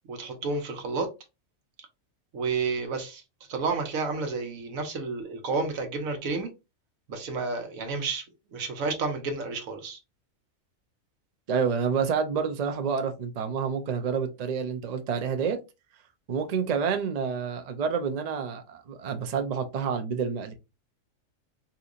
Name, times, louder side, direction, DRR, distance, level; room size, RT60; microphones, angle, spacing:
voice 1, 0.1-1.1 2.3-3.2 3.5-6.5 7.1-8.2 8.5-10.0, right 4 dB, 85° right, 1.3 m, -30 dB
voice 2, 11.5-15.6 16.3-20.5, right 6 dB, 60° right, 0.4 m, -28 dB
3.9 x 2.8 x 2.4 m
omnidirectional pair, 1.4 m